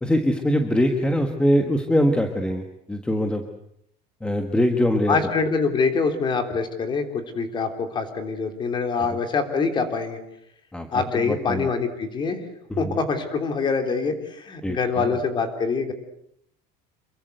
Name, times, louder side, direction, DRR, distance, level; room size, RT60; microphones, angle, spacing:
voice 1, 0.0-3.4 4.2-5.2 10.7-11.7 12.7-13.0 14.6-15.2, equal, 5° left, 5 dB, 1.5 m, -23 dB
voice 2, 5.1-10.2 10.9-12.4 12.8-15.9, left 4 dB, 25° left, 7 dB, 3.4 m, -25 dB
28.0 x 23.0 x 8.0 m, 0.74 s
cardioid pair, 180°, 19 cm